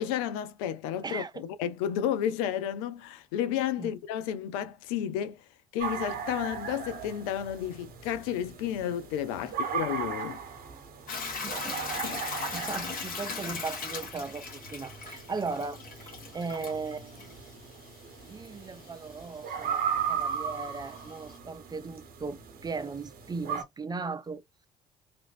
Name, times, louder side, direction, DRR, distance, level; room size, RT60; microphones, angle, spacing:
voice 1, 0.0-5.4 5.7-10.4 12.0-12.2, left 10 dB, 70° left, 0.5 m, -32 dB
voice 2, 1.0-1.4 3.8-3.9 9.4-9.5 11.4-11.9 12.5-17.3 18.3-24.4, right 4 dB, 20° right, 0.5 m, -37 dB
sound 1, 5.8-23.6, right 7 dB, 55° right, 0.9 m, -37 dB
Hiss / Toilet flush / Trickle dribble, 11.1-21.4, left 4 dB, 50° left, 1.5 m, -40 dB
3.0 x 2.5 x 2.4 m
hypercardioid pair, 50°, 18 cm